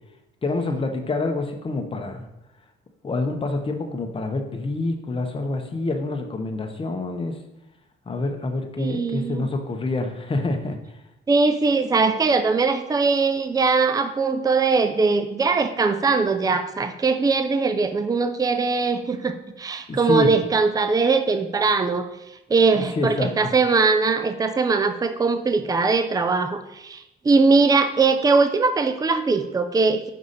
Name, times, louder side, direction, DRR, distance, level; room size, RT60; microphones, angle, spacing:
voice 1, 0.4-2.3 3.0-7.4 8.1-10.8 19.9-20.3 22.7-23.3, left 2 dB, 25° left, 4 dB, 0.9 m, -27 dB
voice 2, 8.8-9.5 11.3-22.1 22.5-30.1, right 4 dB, 20° right, 9 dB, 0.5 m, -21 dB
5.4 x 4.8 x 4.0 m, 0.88 s
cardioid pair, 90°, 20 cm